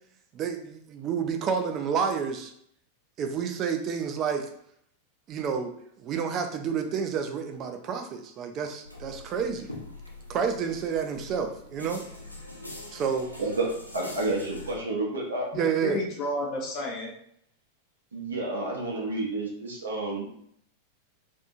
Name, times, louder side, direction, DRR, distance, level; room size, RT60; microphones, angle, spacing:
voice 1, 0.3-2.5 3.2-4.5 5.3-5.7 6.0-9.7 10.3-12.0 12.9-13.3 15.5-16.0, right 6 dB, 35° right, 5 dB, 0.4 m, -29 dB
sound 1, 8.8-14.7, left 2 dB, 90° left, 0.7 m, -44 dB
voice 2, 13.4-15.5 18.1-20.2, right 2 dB, 70° right, -1 dB, 0.7 m, -30 dB
voice 3, 15.5-17.1, left 1 dB, 35° left, -1 dB, 0.6 m, -31 dB
2.6 x 2.5 x 2.4 m, 0.68 s
figure-of-eight pair, 90°, 0 cm